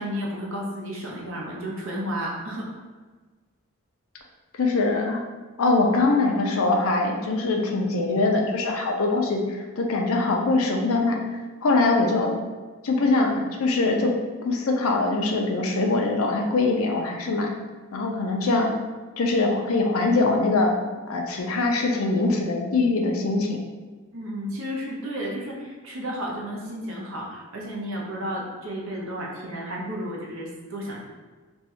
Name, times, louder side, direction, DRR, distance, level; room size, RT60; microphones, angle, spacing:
voice 1, 0.0-2.7 24.1-31.0, equal, 60° right, -3 dB, 0.7 m, -32 dB
voice 2, 4.6-5.3 5.6-11.2 11.6-12.3 12.8-14.1 14.4-17.5 17.9-18.7 19.2-20.7 21.1-23.6, left 3 dB, 70° left, 1 dB, 0.5 m, -23 dB
2.7 x 2.3 x 4.2 m, 1.3 s
head